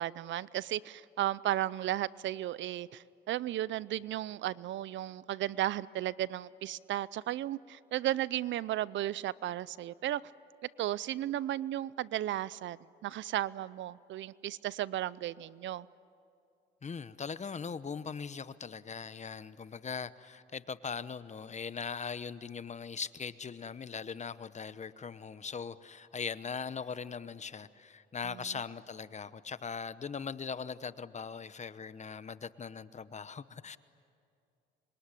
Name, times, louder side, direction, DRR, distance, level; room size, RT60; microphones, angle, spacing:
voice 1, 0.0-10.2 10.8-15.9 28.2-28.5, right 13 dB, 75° right, 20 dB, 0.6 m, -34 dB
voice 2, 16.8-33.8, left 6 dB, 35° left, 15 dB, 1.0 m, -40 dB
26.5 x 22.5 x 10.0 m, 2.5 s
cardioid pair, 80°, 19 cm